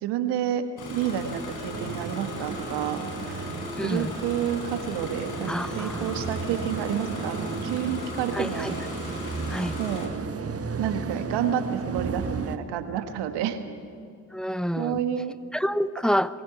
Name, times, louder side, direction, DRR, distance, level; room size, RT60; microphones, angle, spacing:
voice 1, 0.0-0.6 0.9-3.5 3.8-8.8 9.8-10.1 10.8-13.6 14.8-15.4, right 9 dB, 70° right, 9 dB, 1.6 m, -30 dB
Engine starting, 0.8-10.1, left 2 dB, 65° left, 4.9 m, -37 dB
sound 1, 1.7-12.6, right 5 dB, 35° right, 1.5 m, -34 dB
voice 2, 3.8-4.2 5.5-6.2 8.3-8.8 9.5-9.8 14.3-15.0 15.5-16.4, equal, ahead, 15 dB, 0.8 m, -28 dB
22.0 x 15.5 x 9.3 m, 2.5 s
hypercardioid pair, 50°, 41 cm